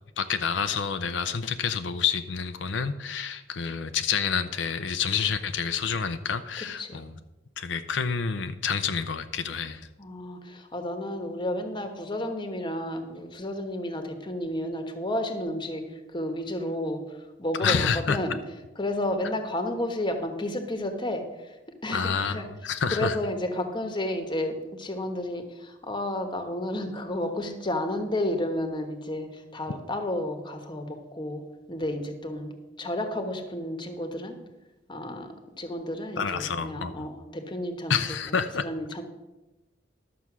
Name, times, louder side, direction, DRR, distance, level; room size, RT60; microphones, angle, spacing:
voice 1, 0.2-7.1 7.6-9.9 17.6-18.2 21.9-23.2 36.2-37.1 37.9-38.7, left 6 dB, 75° left, 9 dB, 0.6 m, -28 dB
voice 2, 10.0-18.4 18.8-21.6 21.8-22.5 22.9-31.4 31.7-34.4 34.9-37.9 38.6-39.0, left 1 dB, 25° left, 6 dB, 1.2 m, -32 dB
11.5 x 6.9 x 6.1 m, 1.1 s
head